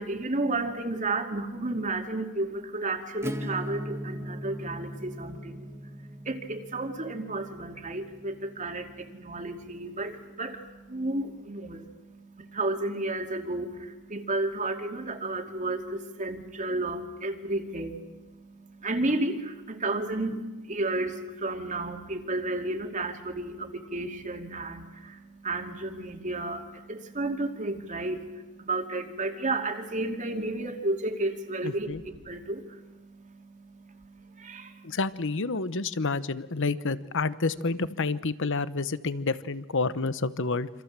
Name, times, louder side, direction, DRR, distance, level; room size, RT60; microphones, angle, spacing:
voice 1, 0.0-35.0, right 2 dB, 35° right, 4 dB, 2.6 m, -32 dB
Acoustic guitar / Strum, 3.2-8.7, equal, 10° right, 1.2 m, -39 dB
voice 2, 31.6-32.0 34.8-40.7, left 3 dB, 60° left, 15 dB, 1.0 m, -29 dB
28.0 x 26.5 x 7.5 m, 1.1 s
head